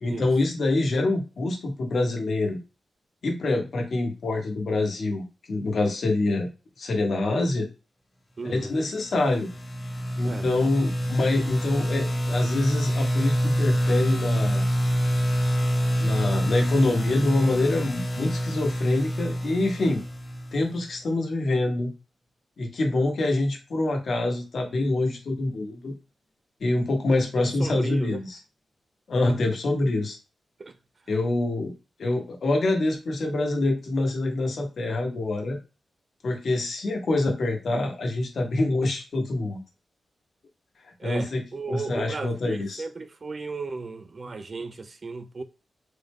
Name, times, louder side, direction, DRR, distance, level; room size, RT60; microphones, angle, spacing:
voice 1, 0.0-2.6 3.2-6.5 6.8-7.7 8.4-9.5 10.2-14.7 16.0-20.0 20.5-21.9 22.6-25.9 26.6-28.4 29.1-30.2 31.1-31.7 32.0-35.6 36.2-39.6 41.0-41.4 41.7-42.8, left 2 dB, 55° left, 1.0 m, -25 dB
voice 2, 8.4-8.7 10.2-10.5 27.4-28.2 30.6-30.7 41.0-45.4, right 3 dB, 35° right, 0.3 m, -35 dB
sound 1, 9.1-20.8, equal, 20° left, 1.0 m, -26 dB
3.6 x 2.1 x 3.4 m
wide cardioid pair, 150°, 0 cm